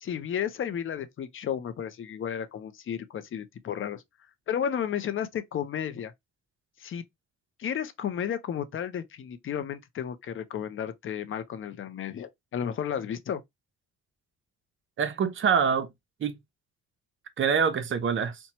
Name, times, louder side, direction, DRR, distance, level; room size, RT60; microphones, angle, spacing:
voice 1, 0.0-4.0 4.5-6.1 6.8-7.0 7.6-13.4, left 9 dB, 45° left, 0.5 m, -33 dB
voice 2, 15.0-15.9 16.2-16.4 17.4-18.4, right 6 dB, 40° right, 0.6 m, -25 dB
2.9 x 2.2 x 2.8 m
cardioid pair, 90°, 30 cm